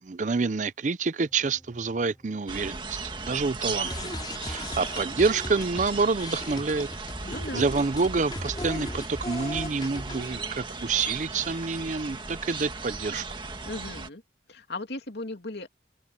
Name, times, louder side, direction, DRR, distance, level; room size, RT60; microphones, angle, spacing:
voice 1, 0.0-3.0 3.3-4.1 4.4-6.9 7.5-13.2, right 4 dB, 45° right, 0.5 m, -27 dB
sound 1, 1.2-13.9, equal, 5° left, 6.4 m, -59 dB
sound 2, 2.5-14.1, right 4 dB, 25° right, 1.7 m, -37 dB
sound 3, 3.8-10.6, left 1 dB, 25° left, 4.3 m, -37 dB
voice 2, 7.2-7.7 13.6-14.2 14.5-15.7, left 2 dB, 70° left, 2.6 m, -36 dB
head